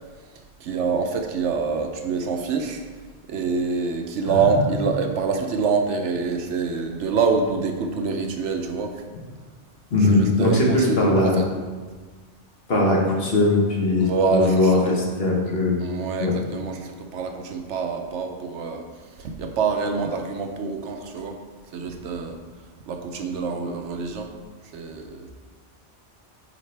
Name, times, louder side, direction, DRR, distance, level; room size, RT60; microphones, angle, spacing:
voice 1, 0.6-2.8 3.3-9.0 10.1-11.5 14.0-14.8 15.5-18.9 19.2-21.4 21.7-22.4 22.9-24.3 24.7-25.3, right 5 dB, 75° right, 4 dB, 1.0 m, -26 dB
voice 2, 9.9-11.4 12.7-15.8 16.2-16.3, left 2 dB, 55° left, -2 dB, 1.4 m, -20 dB
9.0 x 4.2 x 3.3 m, 1.4 s
omnidirectional pair, 1.2 m